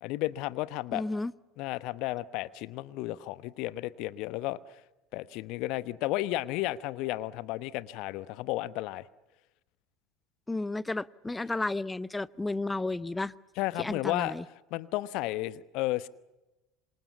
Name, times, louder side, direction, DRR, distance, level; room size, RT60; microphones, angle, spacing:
voice 1, 0.0-1.0 1.6-4.8 5.1-9.1 13.6-14.3 14.7-16.1, left 17 dB, 55° left, 1.0 m, -33 dB
voice 2, 0.9-1.3 10.5-13.3 13.8-14.4, left 2 dB, 10° left, 0.8 m, -32 dB
27.0 x 26.5 x 7.1 m
figure-of-eight pair, 70°, 0 cm